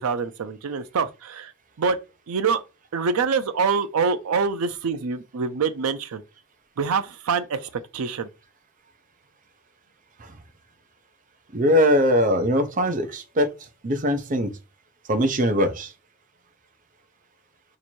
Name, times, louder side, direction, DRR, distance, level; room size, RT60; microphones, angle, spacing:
voice 1, 0.0-1.5 1.8-2.0 2.3-2.6 2.9-6.2 6.8-8.3, right 5 dB, 90° right, 0.5 m, -25 dB
voice 2, 11.5-13.5 13.8-14.5 15.1-15.9, equal, 40° right, 0.5 m, -21 dB
2.9 x 2.6 x 4.3 m
head